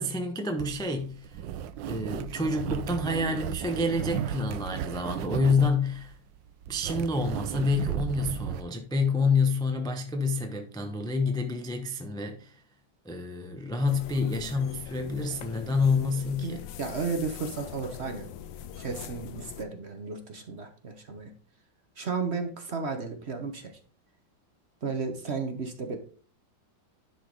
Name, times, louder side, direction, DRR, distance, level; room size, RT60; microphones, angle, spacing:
voice 1, 0.0-1.4 1.9-6.2 6.7-12.5 13.0-16.6, left 3 dB, 5° left, 0.4 m, -28 dB
sound 1, 0.6-8.6, right 10 dB, 80° right, 1.3 m, -35 dB
sound 2, 13.9-19.6, left 10 dB, 80° left, 1.4 m, -42 dB
voice 2, 16.4-18.3 18.7-21.3 22.0-23.8 24.8-26.0, right 4 dB, 45° right, 1.0 m, -33 dB
11.0 x 4.9 x 3.9 m
omnidirectional pair, 2.0 m